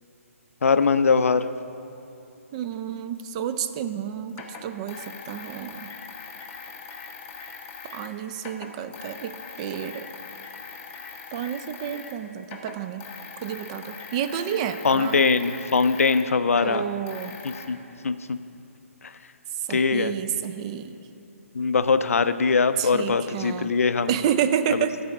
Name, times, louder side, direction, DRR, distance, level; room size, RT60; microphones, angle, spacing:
voice 1, 0.6-1.5 14.8-16.8 17.4-17.8 18.0-18.4 19.0-19.1 19.7-20.1 21.5-24.2 24.7-24.9, left 4 dB, 70° left, 12 dB, 0.4 m, -22 dB
voice 2, 2.5-5.9 7.9-10.1 11.3-13.1 13.4-15.2 16.6-17.4 19.5-21.0 22.8-23.7 24.1-25.0, right 9 dB, 25° right, 10 dB, 0.3 m, -30 dB
sound 1, 3.2-3.3 4.3-8.1 8.4-12.2 12.4-17.7, left 5 dB, 20° left, 0.6 m, -41 dB
11.0 x 4.8 x 6.3 m, 2.8 s
figure-of-eight pair, 135°, 8 cm